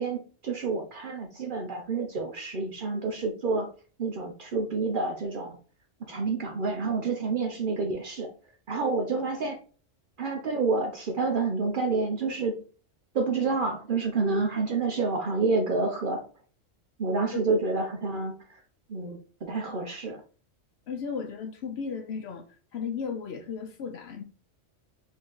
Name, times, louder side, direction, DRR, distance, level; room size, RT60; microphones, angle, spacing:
voice 1, 0.0-3.7 4.0-5.6 6.0-8.3 8.7-9.6 10.2-12.6 13.1-16.2 17.0-18.3 18.9-20.2, right 3 dB, 55° right, 0.6 m, -28 dB
voice 2, 20.9-22.4 22.7-24.2, left 6 dB, 65° left, 0.7 m, -35 dB
4.0 x 2.8 x 3.7 m
omnidirectional pair, 1.3 m